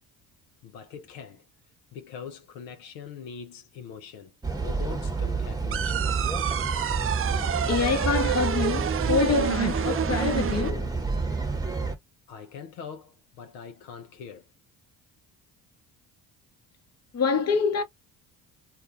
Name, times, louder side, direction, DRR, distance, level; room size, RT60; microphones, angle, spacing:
voice 1, 0.6-1.4 1.9-6.2 12.3-14.5, left 7 dB, 80° left, 0.7 m, -42 dB
sound 1, 4.4-12.0, right 4 dB, 10° right, 1.0 m, -29 dB
sound 2, 5.7-10.7, right 9 dB, 30° right, 0.4 m, -29 dB
voice 2, 7.7-10.9 17.1-17.8, left 5 dB, 35° left, 0.9 m, -26 dB
2.4 x 2.3 x 2.6 m
hypercardioid pair, 55°, 44 cm